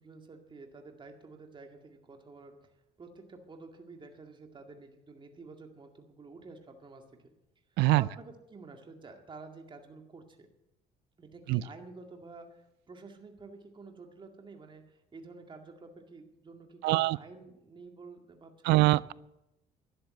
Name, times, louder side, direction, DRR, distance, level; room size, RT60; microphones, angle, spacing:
voice 1, 0.0-2.7 3.0-7.3 7.7-10.5 11.2-18.8, right 3 dB, 30° right, 4 dB, 2.1 m, -50 dB
voice 2, 16.8-17.2 18.6-19.1, right 18 dB, 85° right, 21 dB, 0.5 m, -23 dB
12.0 x 10.5 x 8.3 m, 0.87 s
cardioid pair, 110°, 17 cm